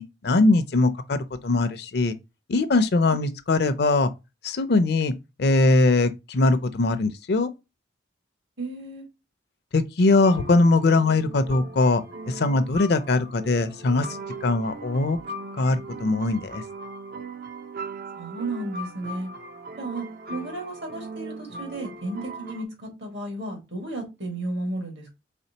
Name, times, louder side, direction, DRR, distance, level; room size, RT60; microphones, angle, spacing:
voice 1, 0.0-2.1 2.5-4.1 4.4-5.1 5.4-7.5 9.7-12.0 12.3-14.1 14.4-15.2 15.6-16.6, left 2 dB, 55° left, 0.5 m, -21 dB
voice 2, 8.6-9.1 18.2-19.3 19.8-25.1, right 2 dB, 70° right, 1.7 m, -33 dB
sound 1, 10.1-22.6, right 2 dB, 50° right, 0.4 m, -39 dB
4.2 x 3.5 x 2.8 m
head